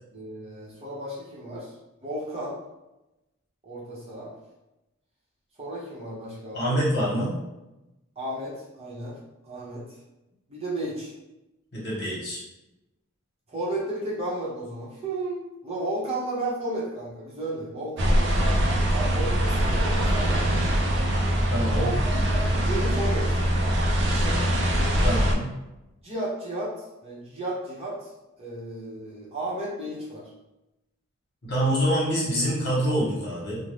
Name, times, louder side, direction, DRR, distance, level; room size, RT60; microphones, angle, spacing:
voice 1, 0.1-1.7 2.0-2.6 3.6-4.3 5.6-6.8 8.2-9.2 9.4-9.8 10.5-11.1 13.5-18.6 18.9-20.5 21.7-23.3 24.1-24.4 26.0-26.7 27.0-28.1 28.4-30.3, right 1 dB, 30° right, -6 dB, 0.8 m, -33 dB
voice 2, 6.5-7.3 11.7-12.4 21.5-21.9 25.0-25.5 31.4-33.6, equal, 50° left, -5 dB, 1.1 m, -25 dB
sound 1, 18.0-25.3, equal, 55° right, 0.4 m, -23 dB
2.6 x 2.1 x 3.2 m, 0.96 s
head